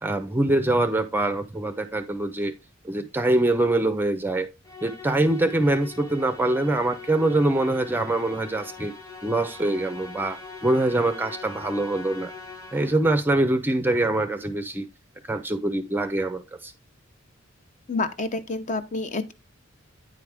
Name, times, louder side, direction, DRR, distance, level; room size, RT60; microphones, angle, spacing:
voice 1, 0.0-2.5 2.8-4.5 4.8-8.9 9.2-12.3 12.7-14.9 15.2-16.7, right 2 dB, 10° right, 0.5 m, -24 dB
Musical instrument, 4.6-13.2, left 4 dB, 15° left, 1.0 m, -42 dB
voice 2, 17.9-19.3, left 3 dB, 35° left, 0.7 m, -28 dB
9.4 x 4.6 x 3.5 m
head